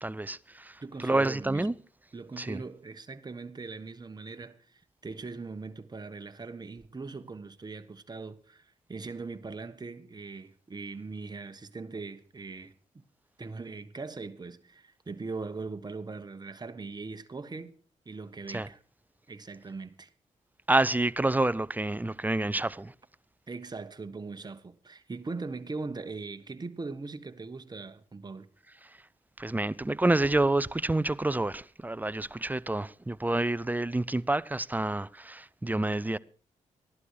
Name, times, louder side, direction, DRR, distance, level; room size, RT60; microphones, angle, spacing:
voice 1, 0.0-1.7 2.4-2.6 18.5-18.7 20.7-22.9 29.4-36.2, right 2 dB, 10° right, 0.6 m, -28 dB
voice 2, 0.8-1.7 2.1-13.1 13.4-17.8 18.0-18.8 19.3-20.1 23.5-28.5, right 4 dB, 30° right, 1.3 m, -40 dB
14.0 x 11.5 x 4.8 m
supercardioid pair, 55°, 14 cm